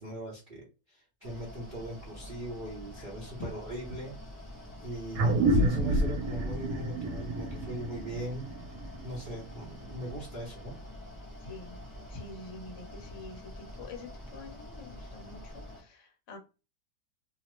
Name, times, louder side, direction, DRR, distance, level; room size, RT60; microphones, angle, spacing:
voice 1, 0.0-4.1 4.8-8.4 9.0-10.8, right 1 dB, 45° right, -4 dB, 0.7 m, -40 dB
Mechanical fan, 1.2-15.8, left 1 dB, 30° left, 0.3 m, -46 dB
sound 1, 5.1-10.0, right 1 dB, 75° right, 1.2 m, -29 dB
voice 2, 11.4-11.8 12.1-16.4, left 3 dB, 55° left, 3 dB, 1.0 m, -46 dB
2.9 x 2.0 x 3.0 m, 0.31 s
omnidirectional pair, 1.8 m